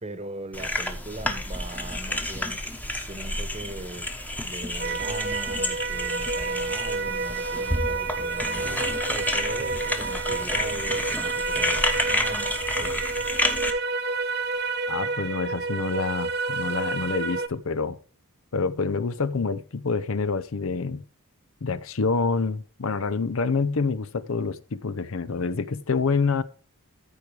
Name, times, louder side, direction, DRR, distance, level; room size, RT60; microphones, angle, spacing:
voice 1, 0.0-2.6 3.1-4.1 4.4-13.1, right 2 dB, 30° right, 1.2 m, -40 dB
sound 1, 0.5-13.7, left 1 dB, 5° left, 1.1 m, -30 dB
sound 2, 4.8-17.5, right 4 dB, 45° right, 0.8 m, -29 dB
voice 2, 14.9-18.0 18.5-21.0 21.6-26.4, left 4 dB, 65° left, 0.6 m, -27 dB
14.0 x 4.7 x 4.8 m
head